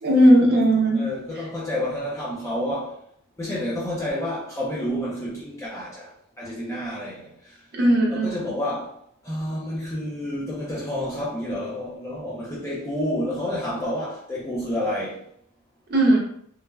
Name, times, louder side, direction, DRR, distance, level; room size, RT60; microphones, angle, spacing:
voice 1, 0.0-1.1 7.7-8.5 15.9-16.2, right 1 dB, 45° right, 0.7 m, -17 dB
voice 2, 0.9-3.0 3.4-7.6 8.1-9.0 9.2-15.2, left 1 dB, 15° left, 0.4 m, -29 dB
3.1 x 2.1 x 2.2 m
head